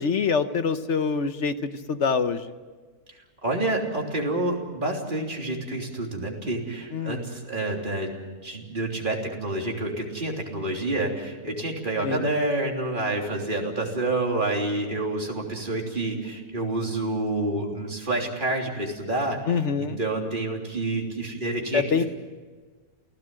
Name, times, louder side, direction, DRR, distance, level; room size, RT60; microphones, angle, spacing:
voice 1, 0.0-2.5 6.9-7.3 12.0-12.3 19.5-20.0 21.7-22.0, left 5 dB, 55° left, 11 dB, 1.1 m, -25 dB
voice 2, 3.4-8.1 8.4-19.4 19.8-21.8, right 2 dB, 30° right, 0 dB, 3.4 m, -28 dB
29.0 x 17.0 x 7.7 m, 1.4 s
omnidirectional pair, 1.6 m